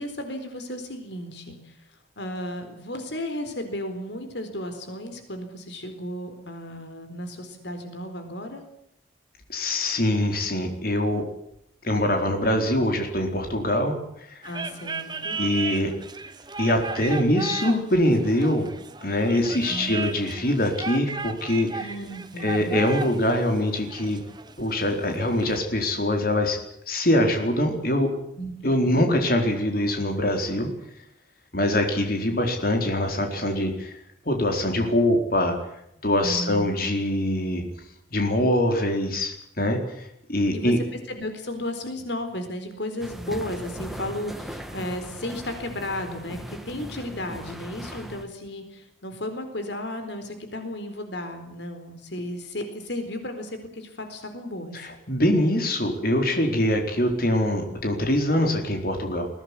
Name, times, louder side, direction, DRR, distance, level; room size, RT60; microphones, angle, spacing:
voice 1, 0.0-1.7 2.2-8.6 14.4-15.4 19.7-19.9 21.8-22.8 28.4-29.1 36.1-36.7 40.5-54.8, left 1 dB, 70° left, 7 dB, 4.3 m, -34 dB
voice 2, 9.5-11.2 11.8-14.0 14.3-14.4 15.4-15.9 16.6-18.7 19.0-21.9 22.4-24.2 24.6-26.6 26.9-28.1 28.6-30.7 31.5-33.9 34.3-35.6 36.0-37.6 38.1-40.8 54.7-59.3, left 1 dB, 50° left, 4 dB, 4.3 m, -23 dB
sound 1, 14.4-25.6, right 4 dB, 25° right, 1.4 m, -35 dB
sound 2, 43.0-48.2, equal, ahead, 2.1 m, -38 dB
22.0 x 18.0 x 9.9 m, 0.77 s
head